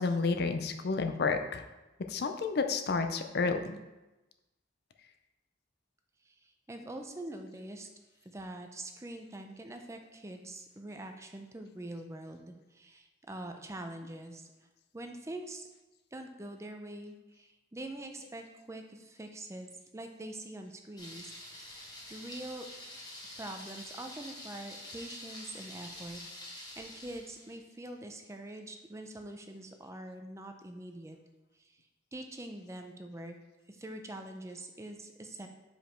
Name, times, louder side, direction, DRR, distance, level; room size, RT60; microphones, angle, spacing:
voice 1, 0.0-1.6 2.1-3.8, left 4 dB, 55° left, 7 dB, 0.5 m, -30 dB
voice 2, 6.3-7.9 8.2-14.5 14.9-15.7 16.1-22.6 23.4-26.2 26.5-31.2 31.6-31.8 32.1-33.3 33.7-35.5, right 1 dB, 15° right, 5 dB, 0.5 m, -44 dB
Thunder, 21.0-27.6, left 1 dB, 20° left, 1.2 m, -47 dB
5.2 x 5.0 x 4.3 m, 1.0 s
head